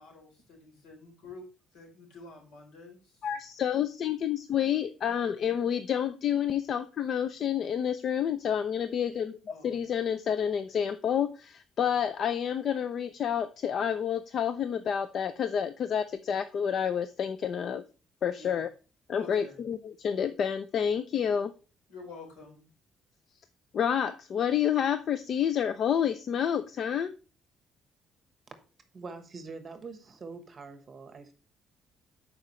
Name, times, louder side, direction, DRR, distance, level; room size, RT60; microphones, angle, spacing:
voice 1, 0.0-1.4 1.7-3.3 9.5-9.8 18.3-18.7 19.2-19.6 21.9-22.6, left 3 dB, 85° left, 1 dB, 3.4 m, -49 dB
voice 2, 3.2-9.4 9.6-17.8 18.2-18.7 19.1-21.5 23.7-27.2, left 8 dB, 45° left, 12 dB, 0.4 m, -29 dB
voice 3, 28.9-31.3, right 4 dB, 30° right, 9 dB, 1.1 m, -44 dB
12.5 x 5.0 x 3.1 m, 0.33 s
cardioid pair, 155°, 0 cm